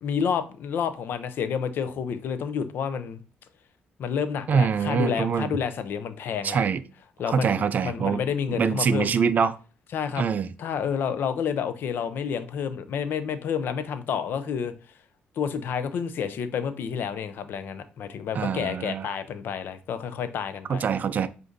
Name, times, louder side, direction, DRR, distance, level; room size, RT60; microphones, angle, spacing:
voice 1, 0.0-3.2 4.0-6.6 7.2-9.1 9.9-10.2 10.6-14.7 15.4-20.8, left 7 dB, 70° left, 0.5 m, -29 dB
voice 2, 4.5-5.5 6.4-6.8 7.3-8.2 8.5-9.6 10.2-10.5 18.3-19.1 20.7-21.3, right 6 dB, 50° right, 0.4 m, -24 dB
7.6 x 2.6 x 2.6 m
cardioid pair, 85°, 4 cm